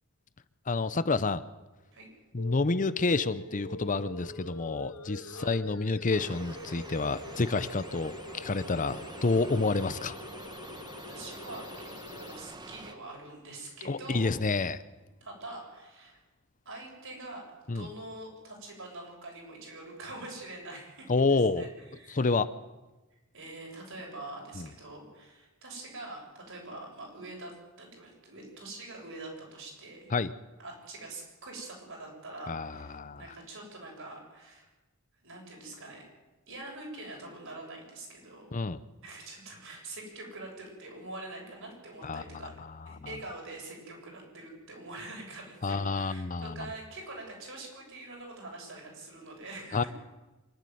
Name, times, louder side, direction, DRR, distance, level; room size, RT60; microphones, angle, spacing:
voice 1, 0.7-1.4 2.3-10.1 13.8-14.8 17.7-17.9 21.1-21.7 22.1-22.5 24.5-24.7 30.1-30.3 32.5-33.2 38.5-38.8 42.0-42.7 43.0-43.1 45.6-46.7 49.7-49.8, left 3 dB, 40° left, 14 dB, 0.7 m, -29 dB
sound 1, 2.4-12.4, left 2 dB, 80° left, 1.6 m, -45 dB
sound 2, 6.1-12.9, right 2 dB, 20° right, 1.3 m, -46 dB
voice 2, 10.6-14.4 15.2-16.2 16.7-17.4 17.7-21.7 21.9-22.3 23.3-30.1 30.6-34.7 35.2-36.0 36.5-38.5 39.0-42.5 42.9-49.9, right 2 dB, 65° right, 0 dB, 7.3 m, -44 dB
25.0 x 12.0 x 9.5 m, 1.1 s
head